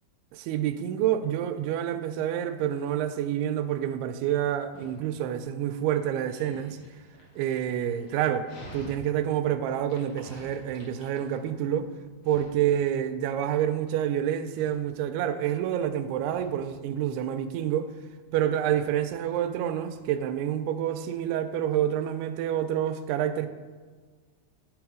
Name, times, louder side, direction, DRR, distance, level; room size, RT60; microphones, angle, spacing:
voice 1, 0.3-6.8 7.4-11.9 12.3-17.9 18.3-23.5, right 10 dB, 85° right, 9 dB, 2.5 m, -28 dB
Dog, 3.1-22.1, left 1 dB, 85° left, 1.2 m, -52 dB
10.5 x 3.9 x 4.8 m, 1.5 s
omnidirectional pair, 4.7 m